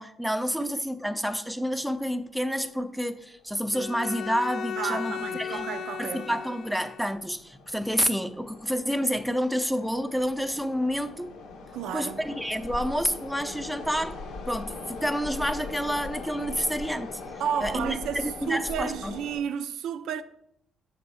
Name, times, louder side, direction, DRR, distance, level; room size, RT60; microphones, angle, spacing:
voice 1, 0.0-5.7 6.0-11.3 11.9-14.2 14.5-17.2 17.6-19.1, equal, ahead, 0.5 m, -29 dB
sound 1, 2.5-2.6 2.9-3.0 3.7-3.9 4.2-4.4 4.9-5.3 5.8-19.4, left 3 dB, 85° left, 0.9 m, -41 dB
Bowed string instrument, 3.7-7.2, left 8 dB, 60° left, 0.3 m, -36 dB
voice 2, 4.8-6.4 11.7-12.2 17.4-20.2, right 8 dB, 80° right, 0.4 m, -32 dB
6.8 x 3.5 x 5.5 m
cardioid pair, 90°, 0 cm